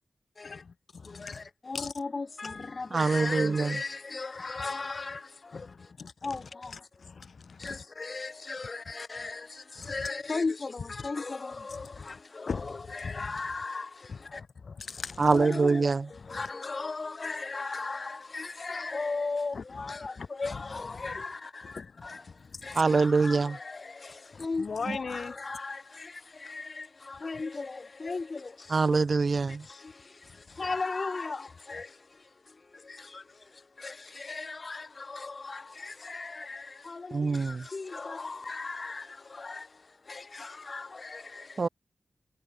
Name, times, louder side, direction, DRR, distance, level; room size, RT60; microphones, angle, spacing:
voice 1, 0.4-1.4 1.7-1.9 5.5-6.3 7.0-7.8 9.8-9.9 11.0-11.1 12.0-12.1 12.5-12.7 13.0-13.3 14.1-15.4 16.2-16.4 19.5-20.6 21.0-21.2 21.7-22.2 22.5-22.8 24.3-25.3, left 5 dB, 70° left, 1.3 m, -40 dB
voice 2, 1.1-5.9 6.2-7.1 7.6-14.4 15.2-29.0 29.5-41.7, left 3 dB, 50° left, 2.0 m, -37 dB
voice 3, 2.9-3.7 15.2-16.0 22.8-23.6 28.7-29.6 37.1-37.6 41.6-41.7, right 4 dB, 60° right, 1.5 m, -24 dB
cardioid pair, 55°, 0 cm